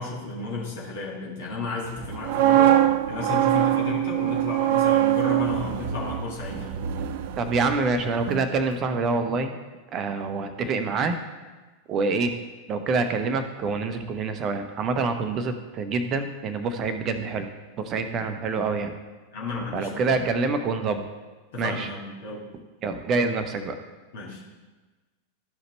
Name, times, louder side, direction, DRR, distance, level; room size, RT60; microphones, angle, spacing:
voice 1, 0.0-2.7 3.1-6.8 19.3-20.1 21.5-22.4 24.1-24.4, left 3 dB, 55° left, -4 dB, 2.0 m, -33 dB
sound 1, 2.0-8.0 8.2-8.5, right 12 dB, 50° right, 0.4 m, -23 dB
voice 2, 7.4-9.6 9.9-11.2 11.9-12.3 12.7-17.5 17.8-18.9 19.7-21.0 21.6-21.9 22.8-23.7, right 4 dB, 30° right, 8 dB, 0.8 m, -26 dB
13.0 x 5.1 x 3.1 m, 1.3 s
figure-of-eight pair, 90°, 0 cm